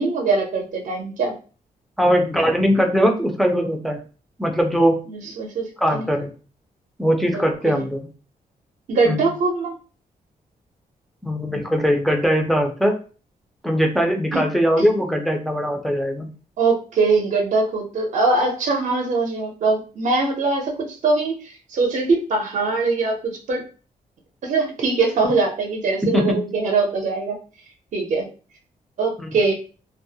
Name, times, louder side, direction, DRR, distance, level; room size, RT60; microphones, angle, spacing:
voice 1, 0.0-1.4 5.1-6.1 7.3-7.8 8.9-9.7 14.3-14.4 14.8-14.9 16.6-23.6 24.4-27.4 27.9-28.3 29.0-29.5, right 3 dB, 55° right, 2 dB, 0.6 m, -22 dB
voice 2, 2.0-4.0 4.4-5.0 5.8-6.3 7.0-8.1 9.0-9.3 11.2-13.0 13.6-16.3 26.1-26.4 29.2-29.3, equal, ahead, 2 dB, 0.4 m, -20 dB
2.3 x 2.0 x 2.7 m, 0.37 s
wide cardioid pair, 150°, 15 cm